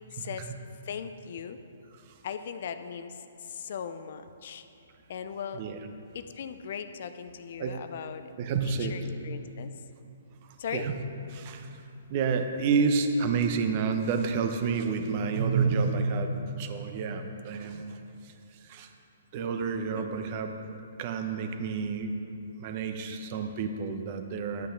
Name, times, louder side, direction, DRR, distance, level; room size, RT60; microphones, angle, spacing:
voice 1, 0.1-0.5 0.8-1.6 2.2-4.6 5.1-5.6 6.1-8.3 8.6-9.7 10.6-10.9 19.9-20.2, left 7 dB, 55° left, 10 dB, 0.6 m, -38 dB
voice 2, 8.4-9.0 10.7-11.0 11.3-11.8 12.1-18.0 18.2-18.3 18.6-18.9 19.3-20.5 21.0-22.1 22.6-24.7, right 5 dB, 40° right, 6 dB, 0.9 m, -29 dB
11.5 x 8.7 x 3.9 m, 2.7 s
hypercardioid pair, 130°, 0 cm